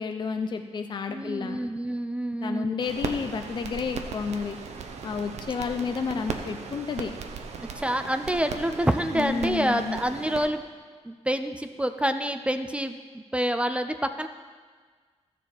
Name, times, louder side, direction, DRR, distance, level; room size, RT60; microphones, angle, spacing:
voice 1, 0.0-1.6 2.4-4.6 5.0-7.1 9.1-10.0, left 5 dB, 40° left, 6 dB, 0.5 m, -30 dB
voice 2, 1.1-2.8 7.6-10.6 11.0-14.3, right 1 dB, 10° right, 8 dB, 0.4 m, -27 dB
sound 1, 2.8-10.5, right 5 dB, 75° right, 0.8 m, -37 dB
14.0 x 7.1 x 4.4 m, 1.6 s
wide cardioid pair, 120°, 12 cm